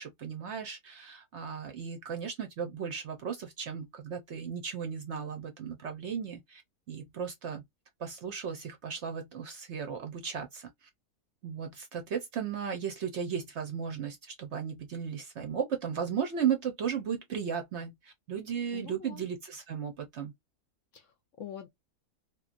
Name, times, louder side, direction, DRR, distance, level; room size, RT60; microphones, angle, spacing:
voice 1, 0.0-6.6 6.9-7.6 8.0-10.9 11.4-20.3, right 7 dB, 60° right, 0.8 m, -35 dB
voice 2, 18.7-19.2 20.9-21.7, left 9 dB, 65° left, 0.8 m, -45 dB
2.9 x 2.4 x 2.4 m
omnidirectional pair, 1.6 m